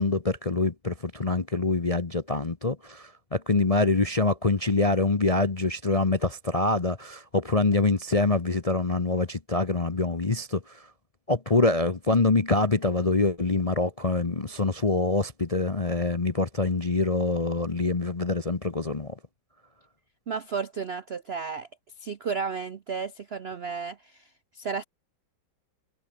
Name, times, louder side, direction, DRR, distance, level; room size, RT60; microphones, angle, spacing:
voice 1, 0.0-10.8 11.3-19.1, left 3 dB, 30° left, 0.6 m, -25 dB
voice 2, 20.3-21.7 22.0-24.8, right 5 dB, 65° right, 0.6 m, -33 dB
omnidirectional pair, 2.2 m